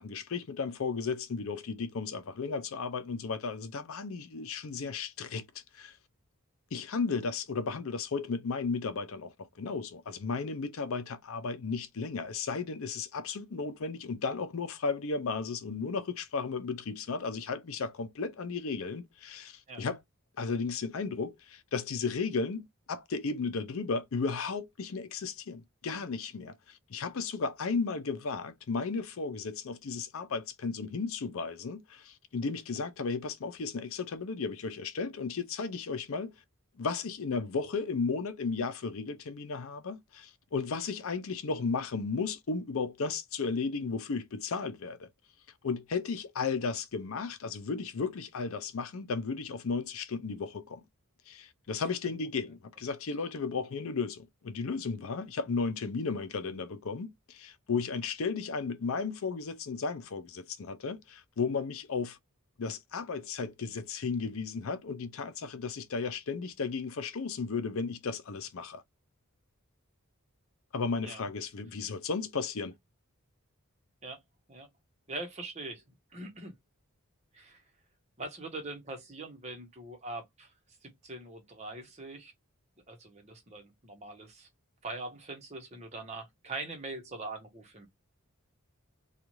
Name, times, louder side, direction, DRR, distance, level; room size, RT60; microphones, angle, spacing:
voice 1, 0.0-5.9 6.7-20.0 20.4-36.3 36.8-45.1 45.6-50.8 51.3-62.2 62.6-68.8 70.7-72.8, left 4 dB, 70° left, 0.5 m, -34 dB
voice 2, 75.1-75.8 76.1-76.5 77.3-77.6 78.2-80.5 80.8-82.3 82.9-84.5 84.8-87.9, right 2 dB, 30° right, 0.9 m, -42 dB
2.6 x 2.4 x 2.9 m
head